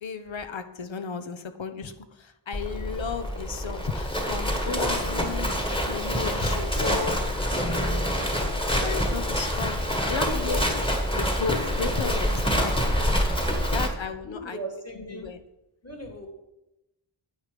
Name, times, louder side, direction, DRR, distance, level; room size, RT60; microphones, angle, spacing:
voice 1, 0.0-5.5 5.8-8.3 8.6-10.8 11.1-12.8 13.7-14.6 14.9-15.4, left 5 dB, 65° left, 9 dB, 1.0 m, -34 dB
Livestock farm animals working animals, 2.5-13.9, equal, 10° left, 1.7 m, -26 dB
voice 2, 6.2-6.7 8.0-9.3 9.9-10.9 13.4-13.8 14.2-15.3 15.8-16.3, right 1 dB, 30° left, 1 dB, 2.4 m, -40 dB
9.5 x 8.4 x 5.2 m, 0.94 s
wide cardioid pair, 80°, 50 cm